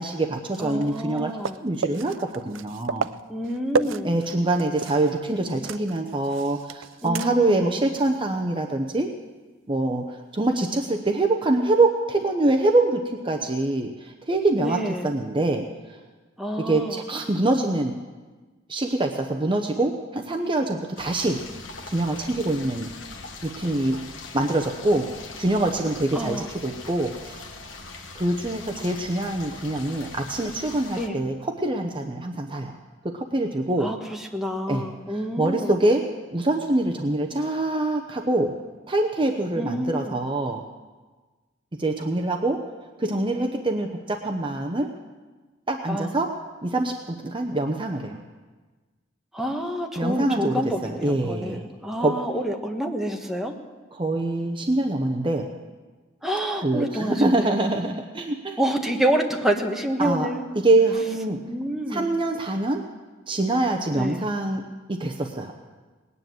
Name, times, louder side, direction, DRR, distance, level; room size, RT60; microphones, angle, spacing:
voice 1, 0.0-1.3 1.6-3.1 4.0-9.1 9.7-15.7 16.6-18.0 18.7-21.4 21.9-22.9 23.4-24.0 24.3-27.5 28.1-32.7 33.0-33.9 34.7-36.0 36.3-38.5 38.9-40.6 41.8-42.6 43.0-44.9 45.7-46.3 46.6-48.2 50.0-51.6 52.0-52.2 53.9-55.5 56.6-58.6 60.0-60.3 60.5-61.4 61.9-62.8 63.3-65.6, right 2 dB, 25° right, 3 dB, 0.9 m, -25 dB
voice 2, 0.6-1.6 3.3-4.1 7.0-7.6 14.6-15.1 16.4-17.0 26.1-26.5 31.0-31.2 33.8-34.0 34.3-35.7 39.6-40.1 45.9-46.1 49.3-53.5 56.2-57.5 58.6-60.4 61.5-62.1 63.9-64.2, equal, ahead, 2 dB, 1.3 m, -28 dB
sound 1, 0.6-5.2 5.4-7.6 8.0-8.1 10.6-10.7, right 5 dB, 75° right, 0.5 m, -32 dB
sound 2, 21.0-31.1, left 3 dB, 80° left, 1.5 m, -41 dB
19.5 x 9.7 x 7.8 m, 1.3 s
head